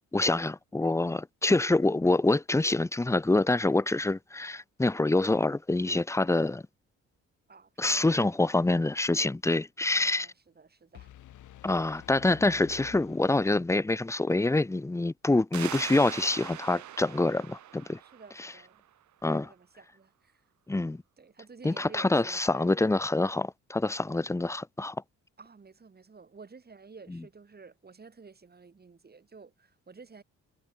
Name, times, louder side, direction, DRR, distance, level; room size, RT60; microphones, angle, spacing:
voice 1, 0.1-6.6 7.8-10.3 11.6-18.0 19.2-19.5 20.7-21.0 21.6-25.0 27.1-27.2, left 2 dB, 10° left, 0.8 m, -26 dB
voice 2, 7.5-8.6 9.9-11.1 18.0-18.8 19.2-20.4 21.2-22.9 25.4-30.2, right 4 dB, 30° right, 6.1 m, -51 dB
sound 1, 10.9-13.9, left 13 dB, 80° left, 6.0 m, -50 dB
sound 2, 15.5-18.9, right 12 dB, 70° right, 2.0 m, -42 dB
cardioid pair, 90°, 30 cm